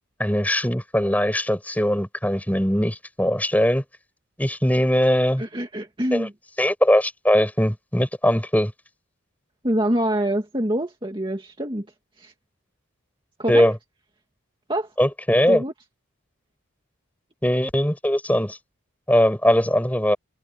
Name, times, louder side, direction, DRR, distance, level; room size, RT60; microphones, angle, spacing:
voice 1, 0.2-3.8 4.4-5.4 6.1-6.3 6.6-8.7 13.5-13.8 15.0-15.6 17.4-18.6 19.1-20.2, equal, 5° left, 6.3 m, -20 dB
voice 2, 5.4-6.3 9.6-11.9 12.2-12.3 13.4-13.7 14.7-14.9 15.5-15.7, right 1 dB, 20° right, 2.3 m, -25 dB
head